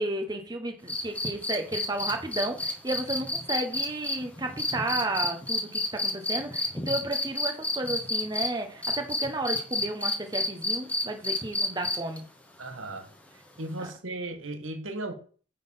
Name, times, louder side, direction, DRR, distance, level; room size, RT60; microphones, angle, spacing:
voice 1, 0.0-12.2, right 2 dB, 20° right, 1.0 m, -32 dB
sound 1, 0.9-8.5 8.8-12.2 13.8-13.9, left 2 dB, 5° left, 1.0 m, -29 dB
voice 2, 12.6-13.0 13.6-15.1, right 2 dB, 85° right, 1.5 m, -36 dB
9.6 x 3.9 x 5.6 m
head